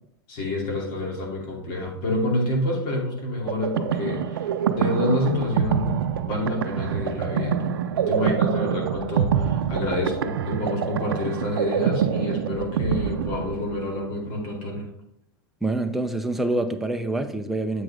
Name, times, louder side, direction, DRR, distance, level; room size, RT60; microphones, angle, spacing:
voice 1, 0.3-14.9, left 1 dB, 45° left, 0 dB, 2.6 m, -28 dB
sound 1, 3.5-14.0, right 8 dB, 80° right, 0.6 m, -26 dB
voice 2, 15.6-17.8, right 2 dB, ahead, 5 dB, 0.7 m, -26 dB
7.9 x 6.1 x 3.5 m, 0.75 s
hypercardioid pair, 125°, 12 cm